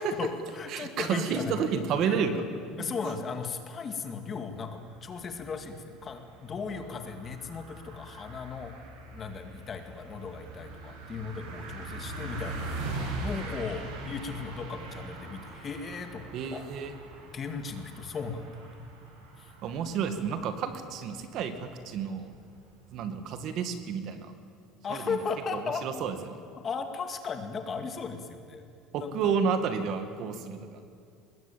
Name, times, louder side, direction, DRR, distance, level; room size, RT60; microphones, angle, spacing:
voice 1, 0.0-1.7 2.0-2.4 2.8-8.7 9.1-16.6 17.3-18.7 19.4-19.5 24.8-25.8 26.6-28.7 28.9-29.3, left 5 dB, 25° left, 6 dB, 2.2 m, -37 dB
voice 2, 0.7-2.4 2.7-2.8 6.7-7.0 16.3-16.9 19.6-22.3 22.9-24.3 24.9-25.2 25.5-26.4 28.9-30.8, right 6 dB, 45° right, 9 dB, 2.1 m, -31 dB
sound 1, 4.5-23.1, right 2 dB, 85° right, 7.4 m, -42 dB
24.5 x 21.0 x 9.2 m, 2.5 s
cardioid pair, 165°, 0 cm